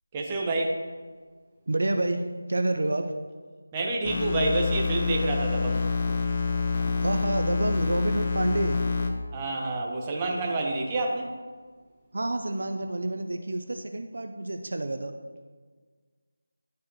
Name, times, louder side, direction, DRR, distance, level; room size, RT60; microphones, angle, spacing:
voice 1, 0.1-0.8 3.7-5.9 9.3-11.3, right 2 dB, 20° right, -1 dB, 1.0 m, -28 dB
voice 2, 1.7-3.1 7.0-8.8 12.1-15.1, right 2 dB, 65° right, 6 dB, 0.6 m, -28 dB
sound 1, 4.0-9.1, left 4 dB, 40° left, 0.7 m, -27 dB
11.0 x 4.7 x 3.0 m, 1.5 s
figure-of-eight pair, 165°, 0 cm